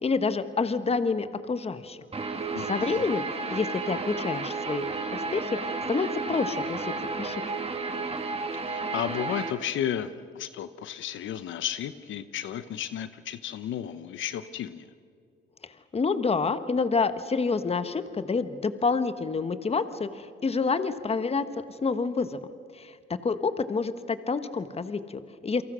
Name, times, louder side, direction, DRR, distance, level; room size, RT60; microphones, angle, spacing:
voice 1, 0.0-2.0 2.6-3.2 3.5-4.9 5.1-7.4 15.9-22.4 22.7-25.6, left 4 dB, 30° left, 11 dB, 1.3 m, -28 dB
Guitar, 2.1-9.5, right 3 dB, 30° right, 2.2 m, -32 dB
voice 2, 2.5-3.0 8.7-14.9, left 10 dB, 75° left, 12 dB, 1.0 m, -33 dB
29.0 x 23.5 x 6.3 m, 2.1 s
cardioid pair, 90°, 20 cm